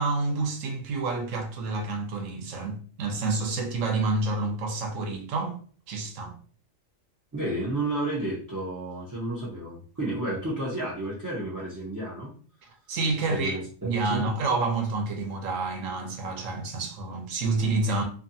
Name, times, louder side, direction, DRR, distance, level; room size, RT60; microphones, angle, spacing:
voice 1, 0.0-5.6 5.9-6.4 12.9-18.0, right 3 dB, 80° right, 1.1 m, -28 dB
voice 2, 7.3-12.3 13.3-14.2, right 1 dB, 25° right, 0.4 m, -31 dB
2.5 x 2.5 x 2.6 m
omnidirectional pair, 1.4 m